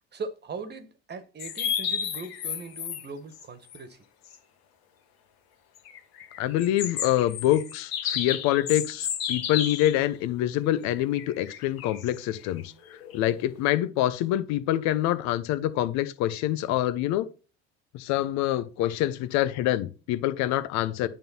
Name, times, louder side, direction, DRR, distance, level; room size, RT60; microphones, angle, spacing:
voice 1, 0.1-4.0, right 4 dB, 35° right, 1.5 m, -39 dB
sound 1, 1.4-3.0 3.3-3.4 3.7-3.8 4.3-4.4 5.8-10.0 11.0-13.6, left 9 dB, 80° left, 1.5 m, -33 dB
voice 2, 6.4-12.7 13.1-17.3 17.9-21.1, left 13 dB, 65° left, 0.8 m, -26 dB
9.0 x 3.7 x 5.6 m
hypercardioid pair, 70°, 30 cm